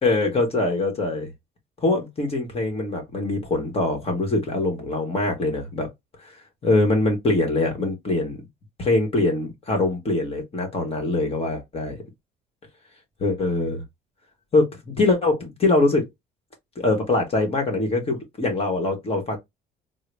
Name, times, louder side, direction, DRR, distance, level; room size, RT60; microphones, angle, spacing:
voice 1, 0.0-1.3 1.8-5.9 6.6-8.4 8.8-12.0 13.2-13.8 14.5-16.1 16.8-19.4, left 2 dB, 35° left, 1.2 m, -23 dB
3.7 x 2.1 x 3.3 m
cardioid pair, 110°, 17 cm